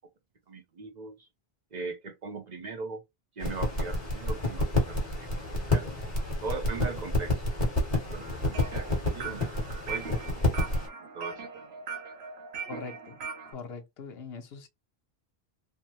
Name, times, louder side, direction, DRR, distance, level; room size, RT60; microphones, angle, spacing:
voice 1, 0.5-1.1 1.7-3.0 3.4-5.3 5.7-5.9 6.4-7.4 8.1-8.9 9.1-10.3 11.1-11.6, right 3 dB, 50° right, 0.6 m, -39 dB
sound 1, 3.4-10.9, left 2 dB, 35° left, 1.3 m, -29 dB
sound 2, 8.2-13.5, right 5 dB, 80° right, 1.1 m, -40 dB
voice 2, 12.7-13.2 13.4-14.7, left 5 dB, 75° left, 0.9 m, -42 dB
3.3 x 2.0 x 2.8 m
omnidirectional pair, 1.1 m